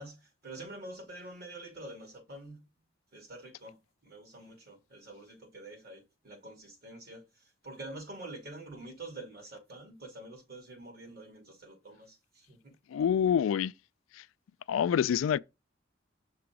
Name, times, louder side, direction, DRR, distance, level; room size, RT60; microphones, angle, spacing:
voice 1, 0.0-2.6 3.1-12.7, right 2 dB, 55° right, 2.6 m, -47 dB
voice 2, 12.9-13.7 14.7-15.4, left 8 dB, 85° left, 0.3 m, -26 dB
6.0 x 3.8 x 4.7 m
head